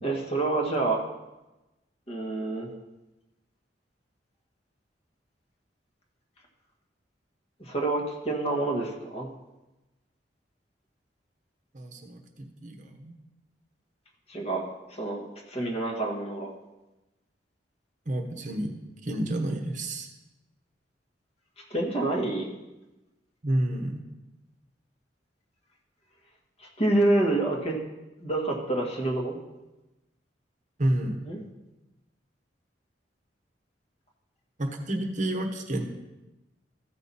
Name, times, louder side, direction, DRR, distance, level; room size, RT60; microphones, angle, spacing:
voice 1, 0.0-1.0 2.1-2.7 7.6-9.3 14.3-16.5 21.7-22.5 26.6-27.8 28.2-29.4 31.3-31.4, right 2 dB, 35° left, 0 dB, 1.6 m, -27 dB
voice 2, 11.7-13.2 18.1-18.7 19.0-20.1 23.4-24.0 30.8-31.2 34.6-35.8, right 1 dB, 45° right, 4 dB, 1.0 m, -30 dB
14.0 x 5.9 x 4.2 m, 1.0 s
head